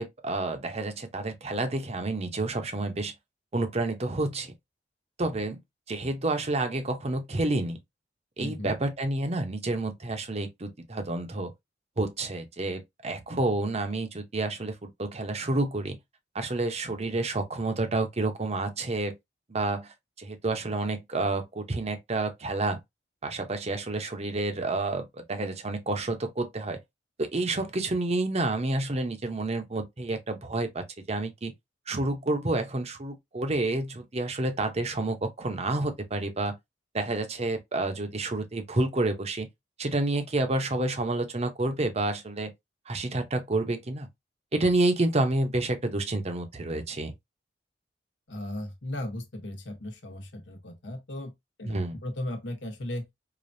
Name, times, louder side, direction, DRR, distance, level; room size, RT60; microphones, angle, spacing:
voice 1, 0.0-3.1 3.5-4.5 5.2-5.6 5.9-7.8 8.4-11.5 12.0-16.0 16.3-19.1 19.5-22.8 23.2-26.8 27.2-31.5 31.9-36.6 36.9-39.5 39.8-42.5 42.9-44.1 44.5-47.1 51.6-52.0, right 2 dB, 35° right, 0.8 m, -29 dB
voice 2, 8.4-8.8 48.3-51.3 51.6-53.0, left 1 dB, 80° left, 1.1 m, -36 dB
4.9 x 2.3 x 2.7 m
head